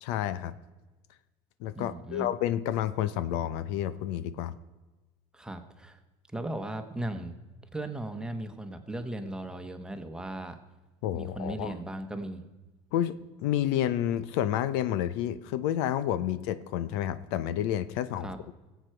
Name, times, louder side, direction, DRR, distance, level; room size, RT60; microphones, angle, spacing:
voice 1, 0.0-0.5 1.6-4.6 11.0-11.7 12.9-18.3, left 11 dB, 80° left, 14 dB, 0.7 m, -30 dB
voice 2, 1.7-2.3 5.3-6.0 6.3-7.4 7.7-10.6 11.1-12.5 18.2-18.4, right 1 dB, 5° right, 7 dB, 1.1 m, -37 dB
19.0 x 8.1 x 4.5 m, 1.2 s
cardioid pair, 135°, 13 cm